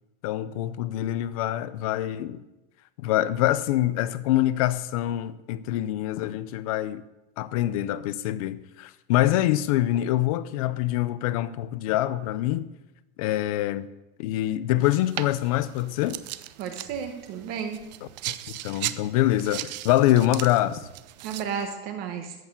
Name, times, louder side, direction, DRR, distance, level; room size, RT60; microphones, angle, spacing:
voice 1, 0.2-2.4 3.0-7.0 7.4-12.7 13.2-13.9 14.2-16.2 18.0-18.3 18.6-20.9, left 14 dB, 35° left, 0.6 m, -25 dB
sound 1, 14.8-21.7, right 15 dB, 45° right, 0.6 m, -38 dB
voice 2, 16.6-17.8 21.2-22.3, right 7 dB, 30° right, 1.2 m, -33 dB
14.0 x 6.9 x 8.3 m
supercardioid pair, 175°, 30 cm